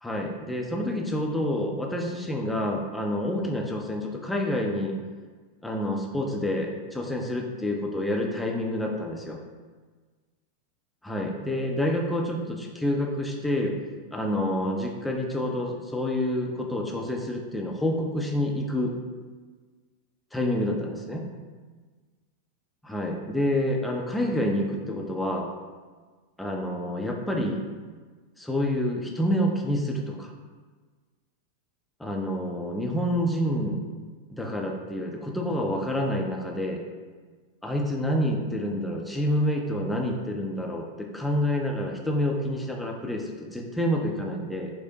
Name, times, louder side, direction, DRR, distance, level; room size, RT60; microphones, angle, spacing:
voice 1, 0.0-5.0 5.6-9.4 11.0-13.7 14.1-18.9 20.3-21.2 22.8-25.5 26.4-27.6 28.4-30.3 32.0-33.8 34.3-36.8 37.6-44.7, left 1 dB, 5° left, 0 dB, 0.4 m, -28 dB
4.7 x 2.0 x 2.7 m, 1.4 s
figure-of-eight pair, 90°, 0 cm